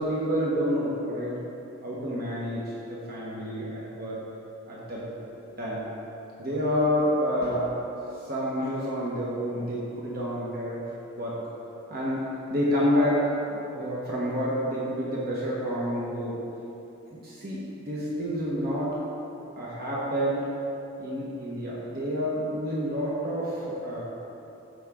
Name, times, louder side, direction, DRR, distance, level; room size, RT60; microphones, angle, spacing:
voice 1, 0.0-1.4 1.8-4.2 4.7-5.0 5.6-5.8 6.4-7.7 8.1-10.8 11.2-11.4 11.9-12.2 12.5-16.4 17.1-19.0 19.6-20.5 21.0-24.0, equal, 45° right, -6 dB, 1.3 m, -28 dB
14.0 x 5.6 x 3.8 m, 2.9 s
head